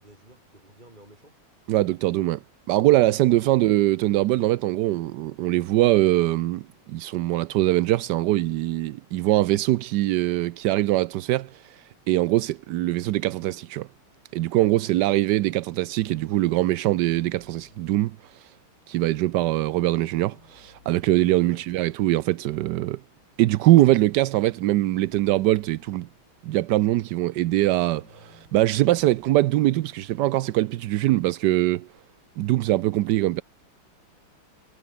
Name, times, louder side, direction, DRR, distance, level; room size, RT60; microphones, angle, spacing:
voice 1, 0.0-1.4 3.3-3.4 21.4-21.6, right 1 dB, 20° right, 6.7 m, -51 dB
voice 2, 1.7-2.4 2.7-6.6 6.9-13.9 14.3-18.5 18.9-23.0 23.4-26.1 26.4-31.9 32.4-33.4, right 16 dB, 75° right, 1.0 m, -22 dB
sound 1, 16.0-17.9 20.0-22.0 24.0-25.9 28.0-30.0 32.0-32.1, left 3 dB, 70° left, 5.5 m, -56 dB
omnidirectional pair, 2.3 m